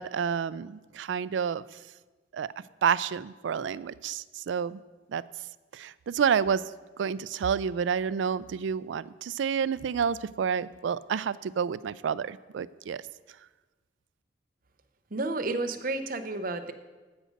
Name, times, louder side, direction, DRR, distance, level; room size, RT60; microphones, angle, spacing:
voice 1, 0.0-1.6 2.3-2.5 2.8-4.8 5.1-5.2 5.7-6.6 7.0-13.0, right 7 dB, 80° right, 17 dB, 0.3 m, -29 dB
voice 2, 15.1-16.7, right 2 dB, 50° right, 8 dB, 0.7 m, -31 dB
14.5 x 5.1 x 6.4 m, 1.3 s
head